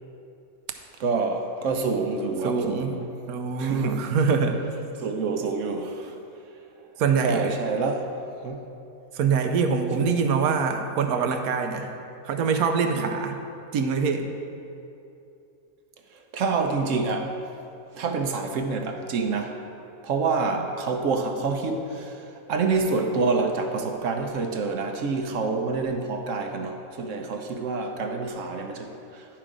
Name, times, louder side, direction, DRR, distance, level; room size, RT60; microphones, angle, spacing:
voice 1, 1.0-3.1 3.6-4.0 5.0-6.2 7.2-8.1 8.4-8.6 9.9-10.1 16.3-17.4 17.9-19.6 20.0-29.3, right 4 dB, 65° right, 5 dB, 1.0 m, -27 dB
voice 2, 2.4-2.9 3.3-4.6 7.0-7.5 9.1-11.9 12.2-13.4 13.7-14.3, right 5 dB, 80° right, 6 dB, 1.1 m, -24 dB
10.0 x 6.0 x 4.9 m, 2.8 s
omnidirectional pair, 1.6 m